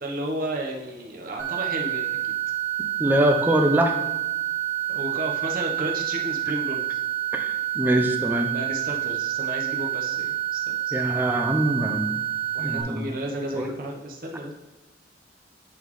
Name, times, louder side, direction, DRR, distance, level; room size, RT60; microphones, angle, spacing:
voice 1, 0.0-2.3 4.9-7.0 8.5-10.9 12.5-14.5, right 1 dB, 50° right, 0 dB, 1.0 m, -33 dB
sound 1, 1.4-12.8, right 12 dB, 75° right, 1.7 m, -28 dB
voice 2, 3.0-3.9 7.3-8.5 10.9-12.1 12.6-13.1 13.6-13.7, right 1 dB, 10° right, 4 dB, 0.6 m, -23 dB
10.5 x 4.1 x 3.1 m, 1.1 s
head